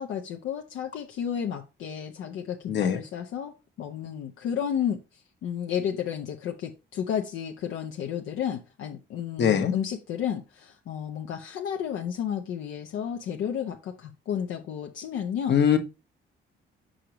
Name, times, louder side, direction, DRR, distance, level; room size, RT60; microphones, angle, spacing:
voice 1, 0.0-5.0 5.4-15.6, left 8 dB, 85° left, 0.8 m, -32 dB
voice 2, 2.7-3.0 9.4-9.7 15.5-15.8, left 8 dB, 65° left, 1.2 m, -21 dB
6.4 x 5.1 x 2.9 m
cardioid pair, 90°, 20 cm